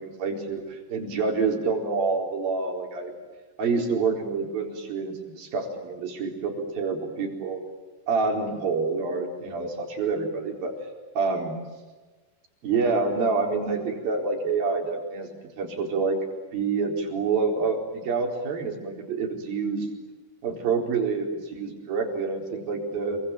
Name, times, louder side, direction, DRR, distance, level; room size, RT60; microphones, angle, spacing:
voice 1, 0.0-3.1 3.6-7.6 8.1-10.7 11.2-11.6 12.6-15.3 15.6-16.2 16.5-19.9 20.4-23.2, right 4 dB, 60° right, 2 dB, 6.0 m, -27 dB
27.0 x 24.0 x 9.0 m, 1.3 s
omnidirectional pair, 4.8 m